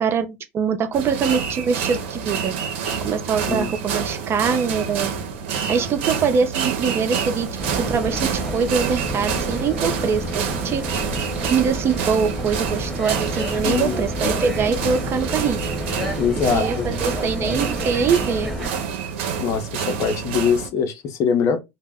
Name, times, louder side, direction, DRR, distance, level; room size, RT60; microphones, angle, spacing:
voice 1, 0.0-2.5 3.0-5.2 5.7-7.5 7.8-11.1 11.4-15.7 16.5-18.5, right 6 dB, 40° right, 0.5 m, -23 dB
sound 1, 0.9-20.7, right 6 dB, 85° right, 0.6 m, -28 dB
sound 2, 7.6-18.7, equal, ahead, 1.3 m, -30 dB
voice 2, 13.6-14.1 16.2-17.0 19.4-21.6, left 6 dB, 55° left, 0.6 m, -23 dB
2.1 x 2.0 x 3.5 m
supercardioid pair, 90°, 6 cm